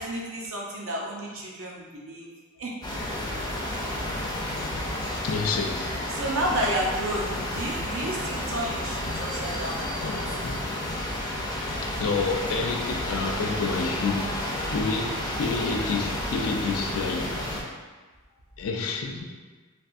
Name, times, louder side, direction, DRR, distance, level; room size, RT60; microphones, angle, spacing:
voice 1, 0.0-2.3 2.6-2.7 4.4-4.5 6.1-10.1, right 1 dB, 70° right, -2 dB, 0.6 m, -31 dB
sound 1, 2.8-17.6, left 1 dB, 20° left, 0.5 m, -31 dB
voice 2, 5.2-6.0 9.0-9.5 9.9-11.1 11.8-14.3 14.7-17.3 18.6-19.3, left 4 dB, 75° left, 3 dB, 0.4 m, -29 dB
3.3 x 2.4 x 2.5 m, 1.4 s
head